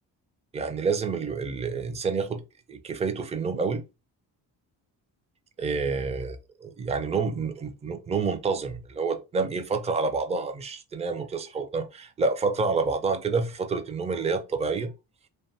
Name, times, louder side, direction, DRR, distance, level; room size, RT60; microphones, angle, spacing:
voice 1, 0.5-2.4 2.7-3.8 5.6-6.4 6.6-14.9, right 4 dB, 15° right, 0.4 m, -28 dB
2.5 x 2.3 x 2.7 m
cardioid pair, 80°, 40 cm